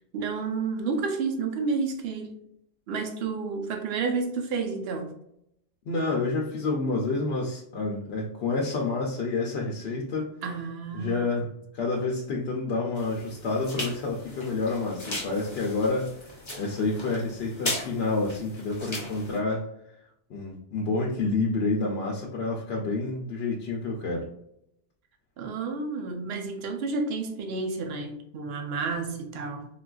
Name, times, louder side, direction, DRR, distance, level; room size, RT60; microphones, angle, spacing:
voice 1, 0.0-2.4 2.9-5.1 10.4-11.3 25.4-29.7, right 4 dB, 65° right, 5 dB, 0.7 m, -30 dB
voice 2, 5.9-10.3 10.9-11.5 11.7-16.1 16.6-19.7 20.3-24.3, left 3 dB, 65° left, -2 dB, 0.7 m, -28 dB
sound 1, 12.9-19.4, left 1 dB, 30° left, 0.7 m, -37 dB
3.7 x 2.4 x 2.3 m, 0.78 s
omnidirectional pair, 1.2 m